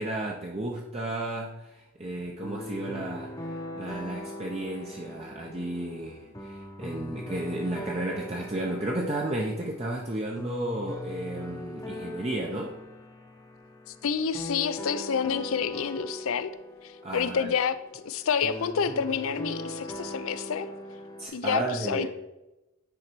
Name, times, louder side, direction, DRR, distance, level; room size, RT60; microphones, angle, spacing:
voice 1, 0.0-12.7 17.0-17.5 21.2-22.1, right 1 dB, 25° right, -1 dB, 0.6 m, -33 dB
sound 1, 2.4-21.3, left 1 dB, 15° left, 0.8 m, -40 dB
voice 2, 14.0-16.5 16.8-20.7 21.3-22.1, left 6 dB, 65° left, 14 dB, 0.4 m, -28 dB
9.7 x 4.0 x 4.5 m, 0.98 s
head